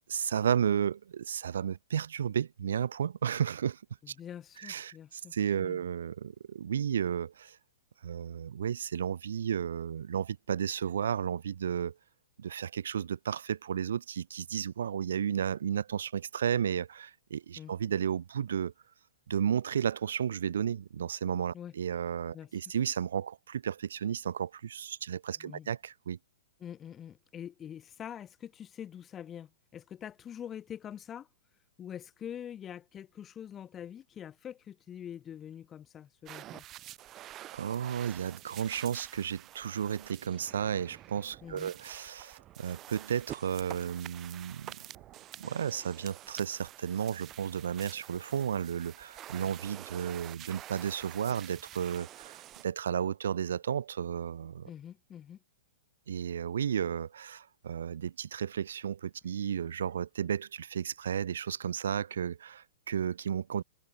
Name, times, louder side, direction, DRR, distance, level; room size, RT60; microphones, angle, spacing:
voice 1, 0.1-3.8 4.1-4.2 4.6-7.6 8.0-11.9 12.4-18.7 19.3-26.2 37.5-44.8 45.4-52.4 52.6-54.7 56.1-63.6, right 8 dB, 80° right, 0.7 m, -33 dB
voice 2, 4.0-5.8 17.6-17.7 21.5-21.7 22.3-22.5 25.4-25.7 26.6-31.3 31.8-36.6 41.4-41.7 54.6-55.4, left 9 dB, 15° left, 1.2 m, -45 dB
sound 1, 36.3-52.6, right 13 dB, 20° right, 2.2 m, -48 dB
hypercardioid pair, 160°, 0 cm